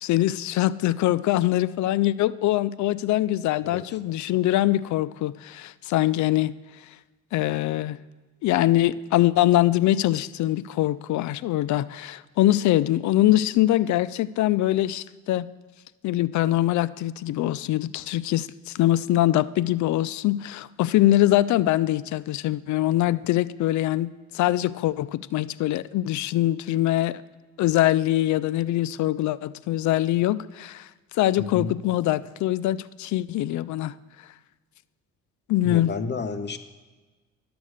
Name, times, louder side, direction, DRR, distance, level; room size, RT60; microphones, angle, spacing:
voice 1, 0.0-6.5 7.3-8.0 8.4-15.5 16.0-27.2 27.6-30.9 31.1-33.9 35.5-35.9, left 14 dB, 70° left, 17 dB, 0.5 m, -23 dB
voice 2, 3.6-4.0 31.4-31.8 35.6-36.6, left 4 dB, 35° left, 10 dB, 0.9 m, -32 dB
11.0 x 7.0 x 6.4 m, 1.3 s
cardioid pair, 90°, 30 cm